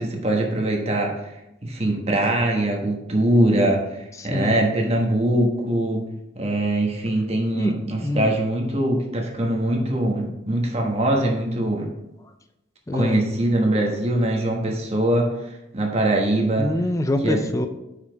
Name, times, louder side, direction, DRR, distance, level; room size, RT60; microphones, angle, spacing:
voice 1, 0.0-1.3 1.6-6.0 6.4-11.9 12.9-16.7 17.2-17.5, right 1 dB, 30° right, 0 dB, 1.2 m, -22 dB
voice 2, 4.2-4.7 7.5-8.3 12.9-13.2 16.6-17.7, left 1 dB, 15° left, 7 dB, 0.4 m, -25 dB
5.7 x 5.0 x 4.5 m, 0.90 s
head